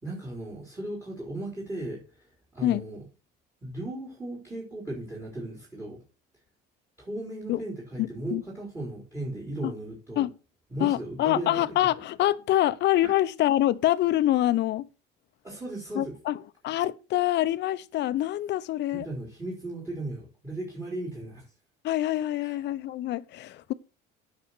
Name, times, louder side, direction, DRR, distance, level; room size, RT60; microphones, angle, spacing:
voice 1, 0.0-3.0 3.6-6.0 7.0-10.2 10.7-11.8 13.0-13.1 15.4-16.2 18.9-21.5 22.4-22.6, right 2 dB, 10° right, 4.2 m, -36 dB
voice 2, 10.8-14.9 15.9-16.4 16.6-19.1 21.8-23.7, left 14 dB, 55° left, 0.8 m, -25 dB
9.4 x 5.8 x 6.6 m
cardioid pair, 115°, 21 cm